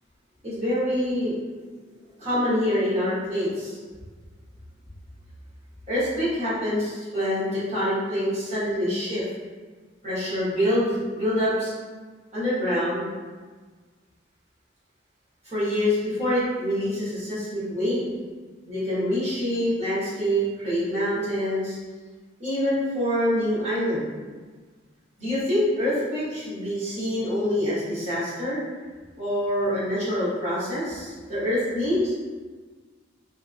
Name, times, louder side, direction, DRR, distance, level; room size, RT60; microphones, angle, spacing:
voice 1, 0.4-1.3 2.2-3.8 5.9-9.2 10.0-11.7 12.3-13.1 15.5-18.0 18.7-21.8 22.4-24.0 25.2-28.6 29.2-32.1, equal, 40° right, -12 dB, 1.3 m, -25 dB
3.2 x 2.1 x 2.4 m, 1.4 s
head